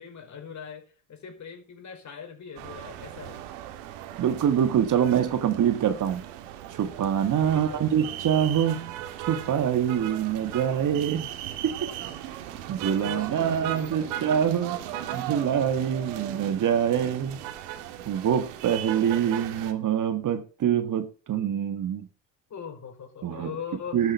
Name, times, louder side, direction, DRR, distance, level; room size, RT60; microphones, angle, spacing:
voice 1, 0.0-3.4 7.4-7.9 13.0-14.1 22.5-24.0, left 7 dB, 40° left, 4.7 m, -41 dB
sound 1, 2.6-19.7, right 11 dB, 85° right, 2.2 m, -38 dB
voice 2, 4.2-6.2 6.7-11.4 11.6-11.9 12.3-17.4 18.1-22.1 23.2-23.6 23.9-24.1, right 9 dB, 45° right, 1.6 m, -25 dB
12.5 x 7.7 x 6.9 m
supercardioid pair, 110°, 44 cm